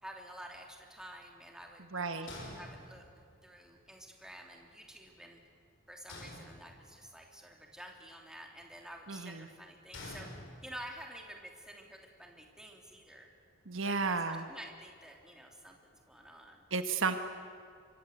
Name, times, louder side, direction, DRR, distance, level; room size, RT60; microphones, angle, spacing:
voice 1, 0.0-1.8 2.2-2.3 2.5-3.0 3.4-5.4 5.9-10.3 10.6-13.3 13.8-15.8 16.1-16.7, right 1 dB, 5° right, 1 dB, 3.1 m, -50 dB
voice 2, 1.9-2.3 9.1-9.5 13.7-14.5 16.7-17.2, right 4 dB, 60° right, 8 dB, 1.4 m, -33 dB
sound 1, 2.3-3.4 6.1-7.1 9.9-11.0, left 1 dB, 60° left, 6.0 m, -48 dB
26.5 x 24.0 x 8.3 m, 2.3 s
head